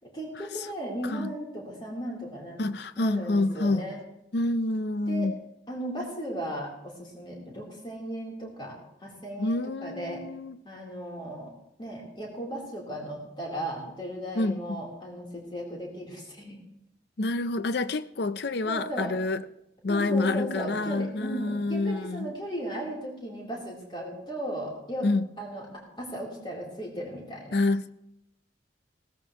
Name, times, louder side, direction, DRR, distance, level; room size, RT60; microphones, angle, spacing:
voice 1, 0.0-2.6 3.0-4.0 5.1-5.3 5.7-10.2 10.6-11.5 11.8-16.6 18.7-19.1 19.9-25.1 25.4-27.6, right 1 dB, 25° left, -3 dB, 3.7 m, -36 dB
voice 2, 2.6-3.9 4.3-5.4 9.4-10.6 14.4-14.8 17.2-19.4 19.8-22.3 25.0-25.3 27.5-27.9, left 2 dB, 60° left, 14 dB, 0.5 m, -27 dB
17.5 x 14.0 x 3.1 m, 0.82 s
head